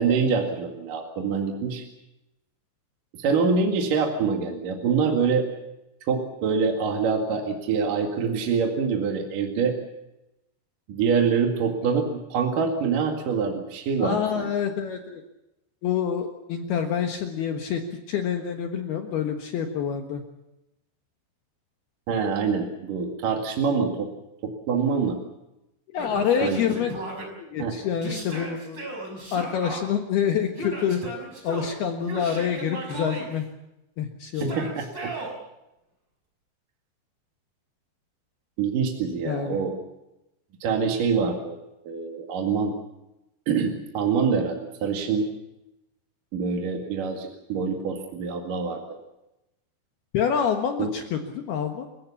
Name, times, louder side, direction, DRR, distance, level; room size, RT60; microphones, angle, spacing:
voice 1, 0.0-1.8 3.1-5.4 6.1-9.7 10.9-14.5 22.1-24.1 24.4-25.2 26.4-26.8 27.6-27.7 34.4-35.1 38.6-39.7 40.6-41.6 41.8-42.7 43.5-45.3 46.3-49.0 50.8-50.9, right 5 dB, 55° right, 2 dB, 3.2 m, -25 dB
voice 2, 14.0-15.2 15.8-17.8 18.1-20.2 25.9-27.0 27.4-28.9 29.3-31.0 31.4-33.5 34.0-34.7 39.2-39.6 50.1-51.9, left 7 dB, 65° left, 5 dB, 3.1 m, -27 dB
Yell, 26.0-27.3 28.0-29.8 30.6-31.7 32.1-33.3 34.3-35.3, right 1 dB, 25° right, 6.1 m, -36 dB
29.5 x 16.5 x 7.2 m, 0.93 s
omnidirectional pair, 5.4 m